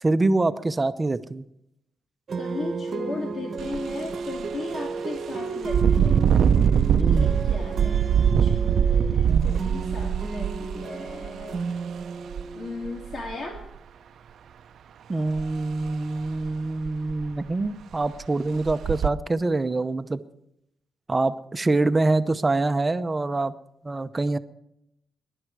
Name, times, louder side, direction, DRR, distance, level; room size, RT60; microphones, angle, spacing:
voice 1, 0.0-1.5 7.0-7.3 15.1-20.2 21.1-23.5 23.8-24.4, right 2 dB, 25° right, 11 dB, 0.8 m, -25 dB
sound 1, 2.3-13.5, right 4 dB, 50° right, 1.1 m, -33 dB
voice 2, 2.4-6.3 7.0-8.0 8.4-12.1 12.5-13.6, left 3 dB, 55° left, 0 dB, 2.5 m, -37 dB
Engine, 3.6-3.8 4.3-4.4 5.6-11.4 12.3-12.4 12.9-13.6 15.4-15.5 15.9-16.0 16.4-16.5 16.9-17.4 17.9-18.0 18.6-19.1, right 8 dB, 75° right, 0.6 m, -22 dB
21.0 x 11.0 x 4.8 m, 0.79 s
cardioid pair, 105°, 0 cm